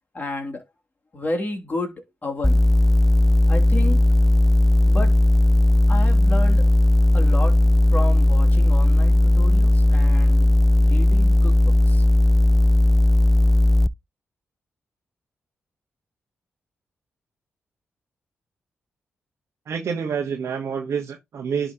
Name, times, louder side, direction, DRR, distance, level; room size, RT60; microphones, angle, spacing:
voice 1, 0.1-0.6 1.1-2.7 3.5-4.0 4.8-5.2 5.9-6.7 7.1-10.5 10.8-12.1, left 2 dB, 35° left, 2.7 m, -31 dB
sound 1, 2.4-13.9, left 1 dB, 5° left, 0.4 m, -16 dB
voice 2, 19.7-21.7, right 6 dB, 70° right, 1.1 m, -27 dB
11.0 x 4.0 x 2.8 m
supercardioid pair, 55°, 5 cm